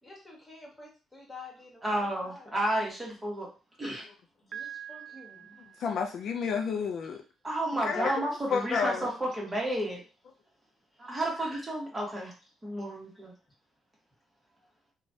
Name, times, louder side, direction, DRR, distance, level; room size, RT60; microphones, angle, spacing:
voice 1, 0.0-2.6 4.4-5.6 11.0-11.1 11.5-11.6, left 3 dB, 15° left, -2 dB, 1.4 m, -49 dB
voice 2, 1.8-3.5 3.8-4.1 7.4-10.0 11.0-12.3 12.6-13.3, right 1 dB, 20° right, -2 dB, 1.3 m, -31 dB
Piano, 4.5-6.4, right 9 dB, 55° right, 0.3 m, -45 dB
voice 3, 5.8-7.2 7.7-8.1 8.5-9.1, left 6 dB, 65° left, 4 dB, 0.4 m, -30 dB
3.1 x 2.3 x 2.7 m, 0.35 s
cardioid pair, 90°, 0 cm